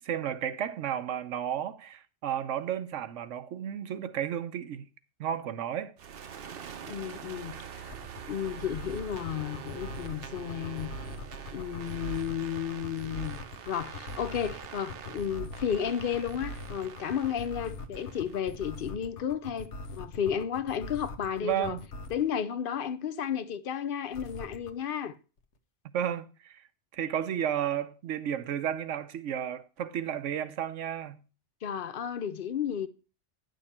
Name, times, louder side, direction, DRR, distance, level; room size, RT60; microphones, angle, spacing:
voice 1, 0.0-4.9 5.2-5.9 21.4-21.8 25.9-26.6 26.9-31.2, right 10 dB, 85° right, 1.1 m, -32 dB
sound 1, 6.0-18.8, right 7 dB, 55° right, 0.9 m, -44 dB
voice 2, 6.9-8.0 8.3-10.9 11.5-13.4 13.7-21.8 22.1-25.2 31.6-32.9, left 8 dB, 55° left, 0.7 m, -33 dB
sound 2, 7.9-22.3 24.1-24.7, left 3 dB, 75° left, 1.2 m, -41 dB
10.0 x 6.6 x 4.3 m
omnidirectional pair, 1.2 m